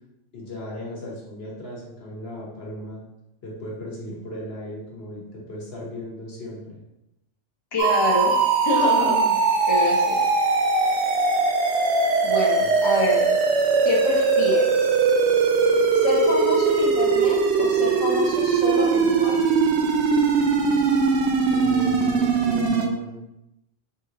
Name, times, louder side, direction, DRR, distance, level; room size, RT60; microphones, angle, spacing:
voice 1, 0.3-3.0 3.4-6.8 12.6-12.7 21.5-23.2, left 1 dB, 55° left, -4 dB, 1.4 m, -36 dB
voice 2, 7.7-8.4 8.6-9.4 9.7-10.3 12.2-13.4 13.8-14.9 15.9-19.5, left 2 dB, 30° left, -3 dB, 0.6 m, -26 dB
sound 1, 7.8-22.9, right 4 dB, 65° right, 0.8 m, -20 dB
3.8 x 3.0 x 3.7 m, 0.89 s
omnidirectional pair, 1.3 m